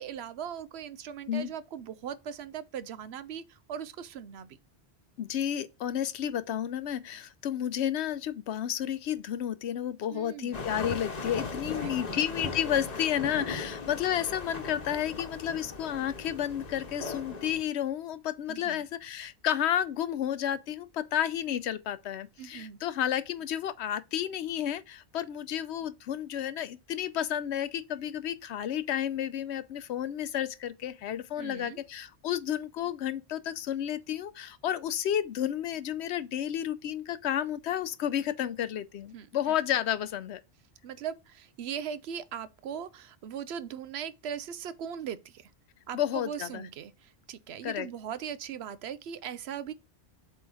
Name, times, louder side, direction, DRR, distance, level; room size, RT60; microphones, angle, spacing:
voice 1, 0.0-4.6 10.1-10.7 11.8-12.2 13.8-13.9 18.5-18.8 22.4-22.8 31.4-31.8 39.1-39.3 40.8-45.5 45.9-49.7, right 8 dB, 75° right, 0.9 m, -39 dB
voice 2, 5.2-40.4 45.9-46.6 47.6-47.9, left 10 dB, 90° left, 0.9 m, -31 dB
sound 1, 10.5-17.6, left 4 dB, 40° left, 1.0 m, -38 dB
7.7 x 3.1 x 4.7 m
omnidirectional pair, 1.1 m